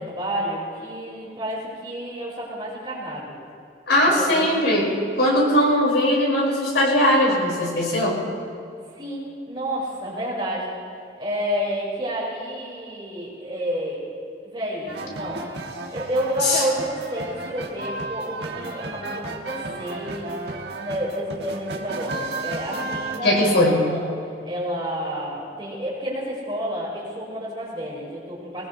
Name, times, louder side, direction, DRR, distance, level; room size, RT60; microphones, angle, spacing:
voice 1, 0.0-3.3 4.1-4.5 9.0-10.8 11.2-14.0 14.5-15.4 15.9-20.3 20.8-24.1 24.4-28.7, equal, 25° right, -6 dB, 4.8 m, -30 dB
voice 2, 3.9-4.9 5.2-8.2 16.4-16.6 23.2-23.9, left 1 dB, 85° left, -3 dB, 5.2 m, -19 dB
sound 1, 14.9-23.2, right 2 dB, 70° right, 1.5 m, -33 dB
23.0 x 19.5 x 3.2 m, 2.5 s
head